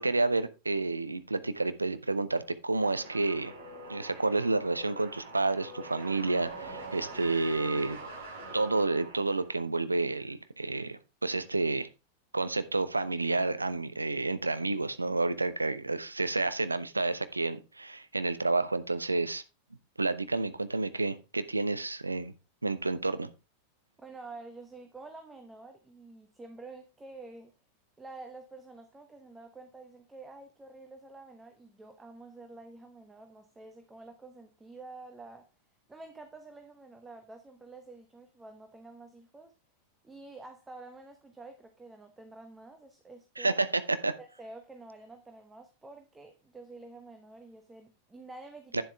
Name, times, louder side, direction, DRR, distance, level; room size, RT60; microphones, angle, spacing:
voice 1, 0.0-3.5 3.9-8.0 8.5-11.9 12.3-19.4 20.0-22.3 22.6-23.3 43.4-44.1 48.7-48.8, right 3 dB, 80° right, 0.7 m, -30 dB
sound 1, 2.8-9.6, right 2 dB, 65° right, 5.6 m, -44 dB
voice 2, 24.0-27.5 28.0-35.5 35.9-39.5 40.0-43.6 44.2-48.8, right 3 dB, 10° right, 1.1 m, -49 dB
9.7 x 7.5 x 3.4 m
figure-of-eight pair, 90°, 0 cm